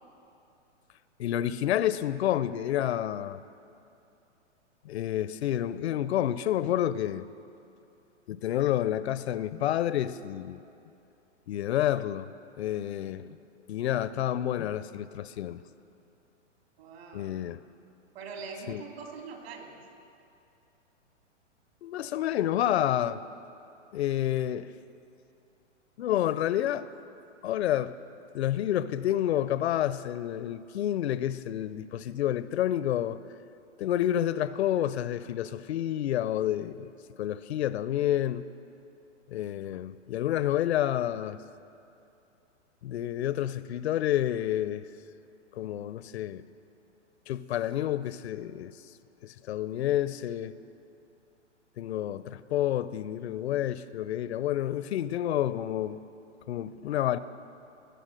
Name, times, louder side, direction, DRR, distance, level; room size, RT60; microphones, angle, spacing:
voice 1, 1.2-3.4 4.9-7.3 8.3-10.6 11.5-12.3 12.6-13.2 13.7-15.6 17.1-17.6 18.7-18.8 21.8-23.2 23.9-24.7 26.0-26.9 27.4-28.0 28.3-33.2 33.8-36.9 37.2-38.4 39.3-41.4 42.8-44.8 45.6-46.4 47.3-48.7 49.2-50.5 51.8-56.0 56.5-57.2, left 12 dB, 60° left, 0.5 m, -29 dB
voice 2, 16.8-17.3 18.1-19.7, right 5 dB, 55° right, 2.6 m, -42 dB
20.5 x 7.0 x 6.3 m
hypercardioid pair, 135°, 37 cm